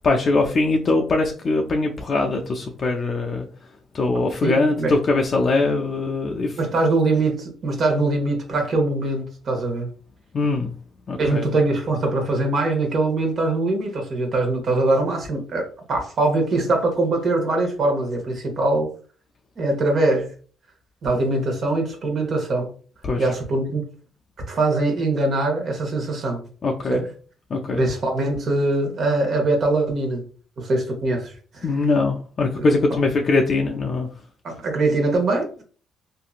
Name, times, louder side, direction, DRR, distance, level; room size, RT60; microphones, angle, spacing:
voice 1, 0.0-3.5 3.9-6.6 10.3-10.7 11.1-11.5 23.0-23.3 26.6-27.1 27.5-27.9 31.6-34.1, left 3 dB, 45° left, 1 dB, 0.4 m, -22 dB
voice 2, 4.4-5.0 6.6-9.9 11.2-18.9 19.6-20.3 21.0-22.7 23.2-23.8 24.5-26.4 26.9-27.0 27.8-30.2 30.6-31.7 32.6-32.7 34.4-35.6, right 2 dB, 55° right, 2 dB, 1.0 m, -22 dB
2.8 x 2.5 x 2.4 m, 0.40 s
cardioid pair, 90°, 0 cm